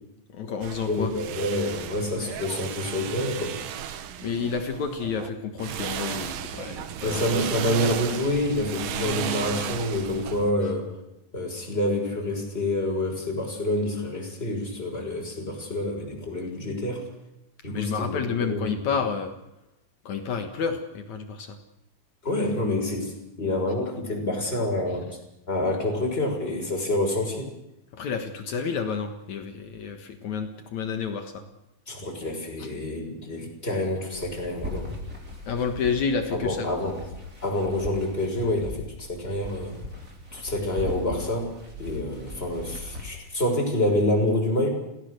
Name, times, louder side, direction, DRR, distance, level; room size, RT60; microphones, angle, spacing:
voice 1, 0.3-1.1 4.2-7.2 17.7-19.3 20.0-21.6 27.9-31.4 32.6-32.7 35.5-36.7, left 6 dB, 80° left, 6 dB, 1.6 m, -30 dB
sound 1, 0.6-5.3 5.6-10.5, right 9 dB, 85° right, 1.8 m, -34 dB
voice 2, 0.9-3.6 7.0-10.9 11.3-17.1 17.6-18.8 22.2-25.1 25.5-27.5 31.9-34.9 36.3-37.0 37.4-39.8 40.3-41.5 41.8-44.7, left 1 dB, 10° left, 1 dB, 5.8 m, -27 dB
sound 2, 34.1-43.1, left 2 dB, 20° right, 3.6 m, -39 dB
29.0 x 17.0 x 6.7 m, 0.90 s
omnidirectional pair, 5.8 m